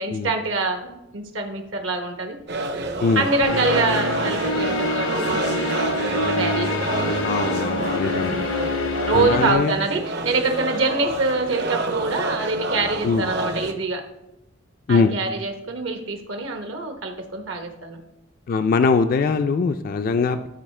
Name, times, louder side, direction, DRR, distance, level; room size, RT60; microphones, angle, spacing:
voice 1, 0.0-2.4 3.1-6.7 7.0-7.1 8.2-14.0 14.9-18.0, right 3 dB, 75° right, 5 dB, 1.0 m, -25 dB
sound 1, 2.5-13.7, right 2 dB, 55° right, 0.7 m, -28 dB
sound 2, 3.4-9.5, left 2 dB, 80° left, 1.0 m, -26 dB
voice 2, 7.2-8.3 9.1-9.7 13.0-13.3 14.9-15.1 18.5-20.5, left 4 dB, 45° left, 9 dB, 0.3 m, -21 dB
12.0 x 4.7 x 3.2 m, 0.89 s
head